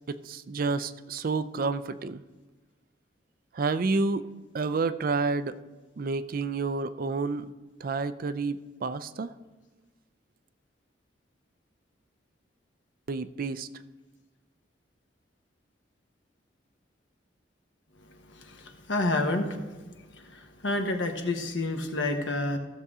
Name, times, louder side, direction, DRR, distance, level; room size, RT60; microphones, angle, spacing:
voice 1, 0.1-2.2 3.5-4.2 4.5-5.6 6.0-7.5 7.8-9.3 13.1-13.7, right 4 dB, 50° right, 13 dB, 0.4 m, -29 dB
voice 2, 18.1-19.9 20.1-22.6, left 2 dB, 85° left, 4 dB, 1.2 m, -30 dB
15.5 x 6.6 x 3.7 m, 1.2 s
head